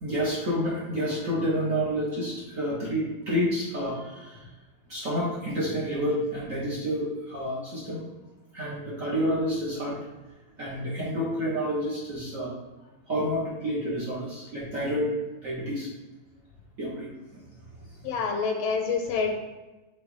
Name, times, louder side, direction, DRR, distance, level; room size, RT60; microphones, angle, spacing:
voice 1, 0.0-4.5 4.9-8.0 8.5-10.0 10.6-12.5 13.1-15.1 15.4-15.9 16.8-17.1 17.8-18.1, equal, 50° right, -6 dB, 1.0 m, -29 dB
voice 2, 18.0-19.3, left 5 dB, 75° left, 3 dB, 1.3 m, -27 dB
5.1 x 3.3 x 3.1 m, 1.1 s
omnidirectional pair, 2.4 m